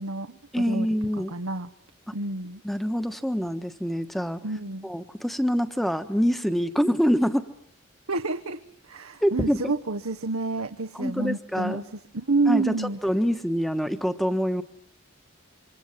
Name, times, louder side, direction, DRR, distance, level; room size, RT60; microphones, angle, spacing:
voice 1, 0.0-0.9 1.3-1.7 2.1-2.6 4.4-4.9 8.1-13.0, right 3 dB, 90° right, 6 dB, 1.2 m, -29 dB
voice 2, 0.5-1.3 2.1-2.2 2.6-4.4 4.8-7.5 9.2-9.7 10.9-11.8 12.5-14.6, equal, ahead, 9 dB, 1.2 m, -25 dB
28.0 x 25.5 x 7.4 m, 0.72 s
head